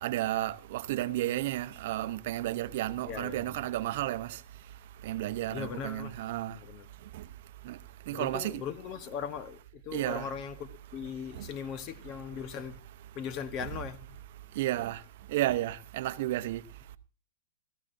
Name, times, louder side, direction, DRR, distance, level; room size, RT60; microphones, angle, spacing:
voice 1, 0.0-4.3 5.0-6.5 7.7-7.8 8.1-8.6 9.9-10.3 14.6-15.0 15.3-16.6, right 15 dB, 55° right, 0.7 m, -32 dB
voice 2, 3.0-3.5 5.5-6.2 6.5-6.9 8.1-12.8 13.1-14.0, left 7 dB, 35° left, 1.0 m, -39 dB
18.0 x 14.0 x 2.6 m
hypercardioid pair, 145°, 0 cm